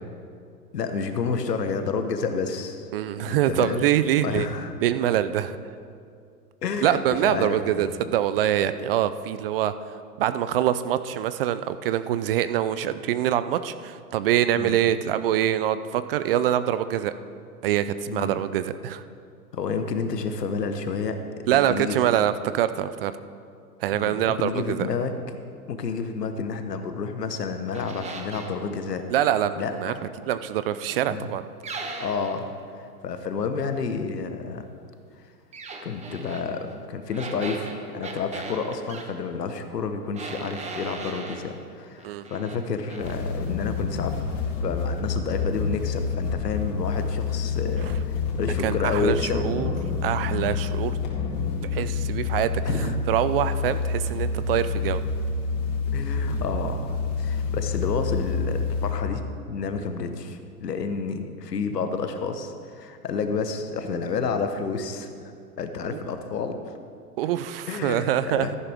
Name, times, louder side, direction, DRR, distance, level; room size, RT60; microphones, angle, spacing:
voice 1, 0.7-2.9 3.2-3.9 4.2-4.7 6.6-7.9 14.6-14.8 18.1-18.4 19.5-21.2 21.5-22.0 23.9-25.1 25.7-29.1 29.6-30.0 31.1-31.3 32.0-34.7 35.8-44.3 44.6-49.4 52.6-53.0 55.9-65.3 65.6-66.6 67.7-68.6, left 5 dB, 85° left, 8 dB, 1.2 m, -30 dB
voice 2, 2.9-4.5 4.8-5.6 6.8-9.7 10.2-17.1 17.6-19.0 21.5-23.1 23.8-24.9 29.1-29.9 30.3-31.4 42.0-42.2 48.6-49.7 50.0-51.0 51.7-52.6 53.1-55.0 65.9-66.0 67.2-68.5, right 11 dB, 40° right, 13 dB, 0.4 m, -24 dB
sound 1, 27.7-28.6 31.6-32.4 35.5-36.5 37.1-39.1 40.1-41.5 42.0-42.6 42.9-43.2, right 3 dB, 15° right, 1.0 m, -38 dB
Mostly Unprocessed Extreme Vibrations, 43.0-58.9, left 5 dB, 55° left, 2.9 m, -28 dB
13.5 x 11.0 x 3.5 m, 2.3 s
hypercardioid pair, 120°, 47 cm